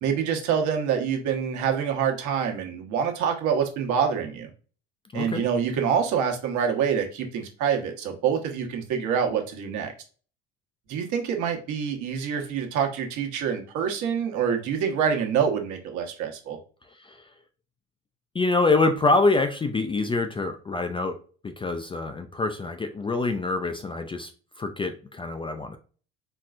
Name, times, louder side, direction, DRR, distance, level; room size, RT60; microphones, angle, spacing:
voice 1, 0.0-4.5 5.1-9.9 10.9-16.6, right 7 dB, 60° right, 3 dB, 1.2 m, -26 dB
voice 2, 18.3-21.2 21.4-24.3 24.6-25.8, left 3 dB, 15° left, 7 dB, 0.4 m, -25 dB
4.4 x 3.1 x 2.5 m, 0.39 s
hypercardioid pair, 70°, 34 cm